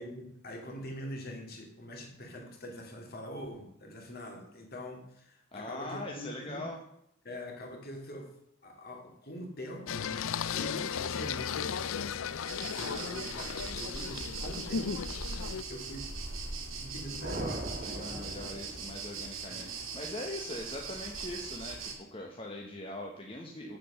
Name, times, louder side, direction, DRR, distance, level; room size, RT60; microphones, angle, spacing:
voice 1, 0.0-6.7 7.2-8.3 8.6-15.1 15.7-16.1 16.7-18.6 19.4-19.8, equal, 50° left, 2 dB, 2.5 m, -44 dB
voice 2, 5.5-6.8 17.8-23.8, left 1 dB, 25° left, 0 dB, 1.1 m, -41 dB
Singing, 9.9-15.6, left 7 dB, 80° left, 0.5 m, -35 dB
sound 1, 12.5-21.9, right 4 dB, 85° right, 2.3 m, -41 dB
sound 2, 17.2-19.4, right 1 dB, 45° right, 1.7 m, -40 dB
7.8 x 7.4 x 6.8 m, 0.75 s
head